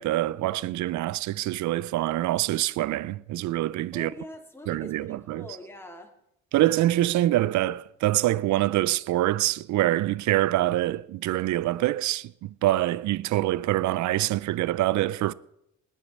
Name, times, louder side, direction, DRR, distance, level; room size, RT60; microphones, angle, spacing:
voice 1, 0.0-4.1 4.7-5.4 6.5-15.3, right 15 dB, 70° right, 0.5 m, -25 dB
voice 2, 3.9-6.1, left 1 dB, 10° left, 2.3 m, -43 dB
19.0 x 10.5 x 4.2 m
cardioid pair, 90°, 30 cm